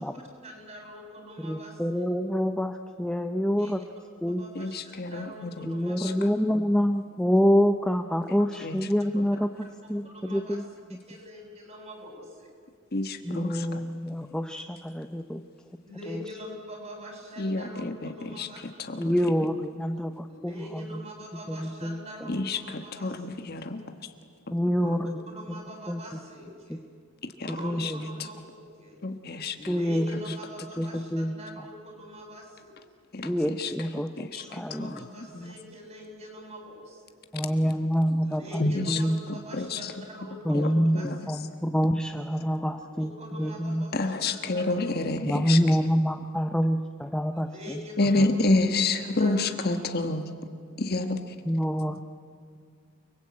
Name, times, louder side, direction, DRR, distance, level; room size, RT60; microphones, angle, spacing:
voice 1, 0.4-2.0 3.6-3.8 4.3-6.1 9.6-10.6 10.9-12.5 15.8-19.0 20.3-23.7 24.8-25.0 25.3-26.8 27.4-29.0 29.5-32.8 34.1-37.2 38.2-41.4 43.0-44.8 47.3-48.2 49.2-49.4 49.7-49.8, equal, 30° right, 1 dB, 7.3 m, -44 dB
voice 2, 1.4-3.8 4.2-4.4 5.7-9.5 9.9-10.6 13.2-15.4 16.1-16.2 19.0-20.9 21.5-22.0 24.5-25.1 25.9-26.0 27.5-28.2 29.7-30.1 30.8-31.4 33.2-35.0 37.3-39.2 40.5-43.9 45.2-47.8 51.5-52.0, equal, 5° left, 6 dB, 0.7 m, -27 dB
voice 3, 4.5-5.7 6.0-6.1 6.5-6.7 8.3-8.9 9.2-9.3 12.9-13.8 17.4-18.5 18.8-19.1 22.3-23.8 27.4-27.5 27.8-27.9 29.0-29.7 33.1-33.7 34.2-35.5 38.6-39.0 39.3-39.9 40.5-41.2 43.9-45.6 48.0-50.2 50.8-51.3, left 2 dB, 45° left, 7 dB, 1.3 m, -29 dB
30.0 x 22.0 x 8.6 m, 2.2 s
head